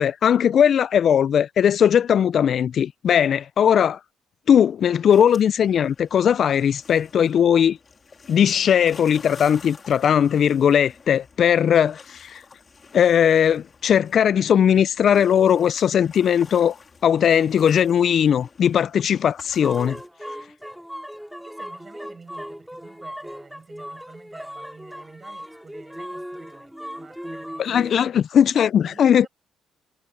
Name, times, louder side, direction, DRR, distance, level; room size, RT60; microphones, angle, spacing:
voice 1, 0.0-4.0 4.5-7.8 8.3-12.4 12.9-16.8 17.0-20.0 27.6-29.3, left 8 dB, 55° left, 0.3 m, -19 dB
sound 1, 5.1-20.1, left 5 dB, 35° left, 3.1 m, -48 dB
sound 2, 19.6-28.0, equal, ahead, 3.4 m, -38 dB
voice 2, 21.4-28.1 28.8-29.3, right 4 dB, 30° right, 6.1 m, -49 dB
cardioid pair, 110°, 0 cm